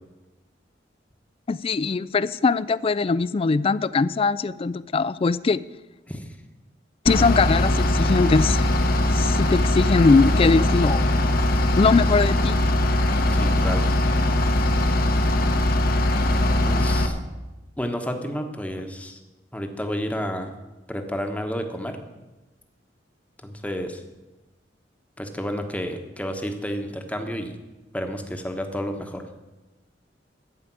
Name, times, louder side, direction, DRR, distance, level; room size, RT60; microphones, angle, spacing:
voice 1, 1.5-5.6 7.1-8.7 9.1-11.0 11.8-12.6, left 4 dB, 30° left, 18 dB, 0.3 m, -21 dB
Bus / Idling, 7.1-17.1, left 1 dB, 55° left, 1.0 m, -21 dB
voice 2, 13.3-13.9 16.7-17.2 17.8-19.2 19.5-20.5 20.9-22.0 23.4-24.0 25.2-27.6 27.9-29.2, equal, 10° left, 5 dB, 1.1 m, -30 dB
14.5 x 5.1 x 9.2 m, 1.1 s
head